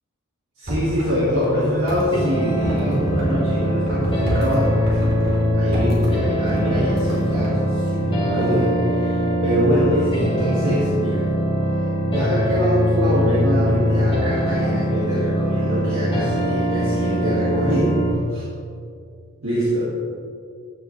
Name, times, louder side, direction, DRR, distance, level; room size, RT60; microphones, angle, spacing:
voice 1, 0.6-5.0 5.5-11.2 12.1-18.0 18.3-18.4 19.4-19.9, equal, 65° right, -8 dB, 2.1 m, -24 dB
sound 1, 0.7-5.4 5.7-6.1 6.5-7.5, equal, 50° right, 2.7 m, -29 dB
sound 2, 2.1-18.1, equal, 25° left, 1.8 m, -22 dB
14.0 x 7.8 x 3.3 m, 2.2 s
head